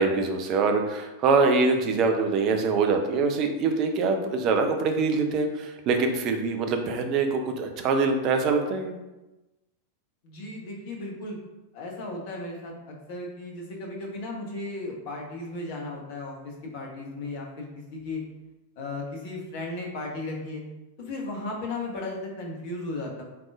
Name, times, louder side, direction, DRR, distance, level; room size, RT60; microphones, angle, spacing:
voice 1, 0.0-9.0, right 4 dB, 40° right, 5 dB, 0.6 m, -24 dB
voice 2, 10.2-11.4 11.7-18.2 18.8-20.6 21.0-23.2, left 2 dB, 50° left, -1 dB, 1.1 m, -35 dB
4.7 x 3.7 x 2.5 m, 1.0 s
figure-of-eight pair, 90°, 0 cm